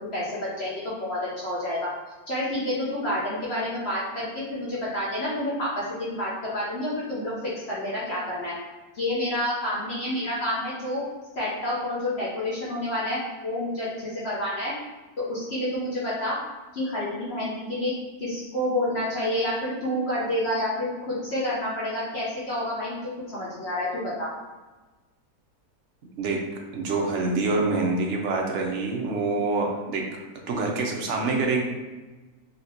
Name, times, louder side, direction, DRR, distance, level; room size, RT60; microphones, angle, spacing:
voice 1, 0.1-1.9 2.3-7.3 7.7-8.5 8.9-11.0 11.4-14.7 15.3-16.4 16.7-17.9 18.2-23.0 23.3-24.3, left 1 dB, 50° left, -8 dB, 1.0 m, -29 dB
voice 2, 26.7-30.0 30.5-31.6, right 3 dB, 60° right, 0 dB, 0.8 m, -26 dB
4.2 x 2.9 x 2.8 m, 1.2 s
omnidirectional pair, 1.7 m